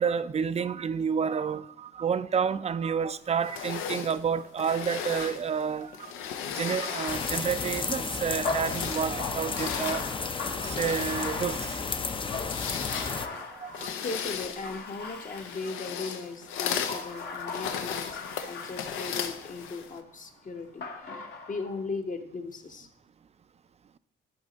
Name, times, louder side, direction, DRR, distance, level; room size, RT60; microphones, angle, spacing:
voice 1, 0.0-6.1 6.5-10.0 10.6-11.8 13.6-13.9, right 6 dB, 35° right, 0.4 m, -29 dB
sound 1, 3.4-8.0 8.5-20.0, left 8 dB, 90° left, 0.7 m, -37 dB
Bathtub (filling or washing), 6.8-14.1 14.6-15.9 16.5-19.7 20.8-21.8, left 4 dB, 60° left, 1.2 m, -39 dB
sound 2, 7.1-13.3, left 4 dB, 25° left, 0.5 m, -33 dB
voice 2, 14.0-22.9, left 3 dB, 40° left, 1.0 m, -38 dB
10.5 x 4.2 x 3.9 m
cardioid pair, 90°, 20 cm